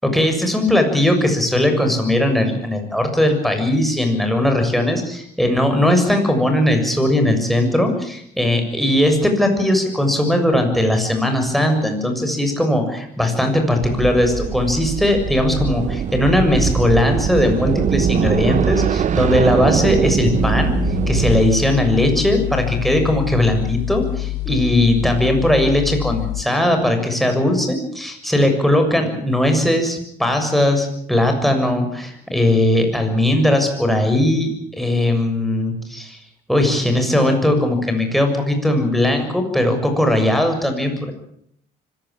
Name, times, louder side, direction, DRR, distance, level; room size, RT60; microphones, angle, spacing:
voice 1, 0.0-20.7 21.1-36.2 36.5-41.1, left 1 dB, ahead, 4 dB, 6.9 m, -18 dB
sound 1, 13.8-21.5, right 8 dB, 45° right, 1.2 m, -21 dB
sound 2, 20.4-26.4, left 17 dB, 85° left, 1.1 m, -26 dB
25.0 x 17.0 x 8.9 m, 0.69 s
cardioid pair, 110°, 17 cm